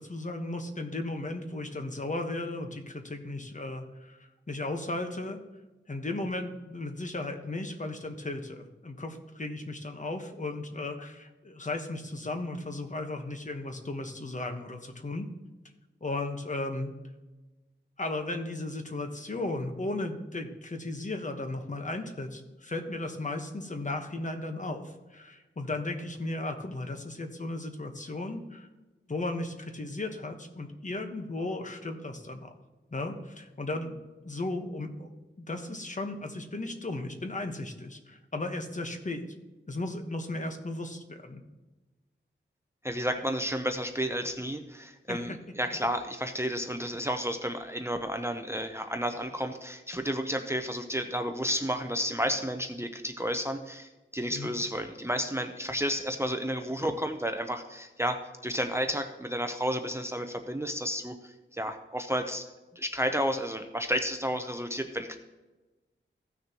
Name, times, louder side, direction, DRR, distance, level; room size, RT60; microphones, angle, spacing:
voice 1, 0.0-5.4 5.9-15.3 16.0-16.9 18.0-28.7 29.1-32.5 32.9-35.1 35.4-39.3 39.7-41.4 45.1-45.2 54.3-54.5, left 2 dB, 40° left, 5 dB, 1.2 m, -35 dB
voice 2, 42.8-62.4 62.8-65.2, equal, 10° right, 6 dB, 0.6 m, -32 dB
15.5 x 6.5 x 3.0 m, 1.1 s
wide cardioid pair, 100°, 21 cm